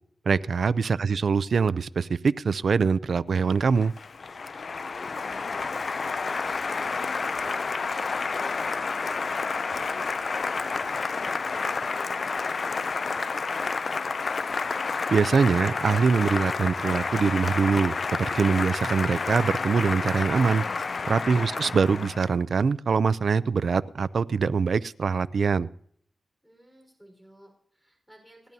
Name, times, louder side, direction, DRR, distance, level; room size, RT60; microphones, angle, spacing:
voice 1, 0.3-3.9 15.1-20.6 21.1-25.7, right 5 dB, 60° right, 0.4 m, -23 dB
Applause, 3.4-22.3, left 4 dB, 50° left, 0.5 m, -30 dB
voice 2, 4.7-5.8 6.2-14.6 21.3-21.7 26.4-28.5, right 1 dB, ahead, 4.6 m, -53 dB
30.0 x 10.5 x 2.8 m
wide cardioid pair, 150°, 0 cm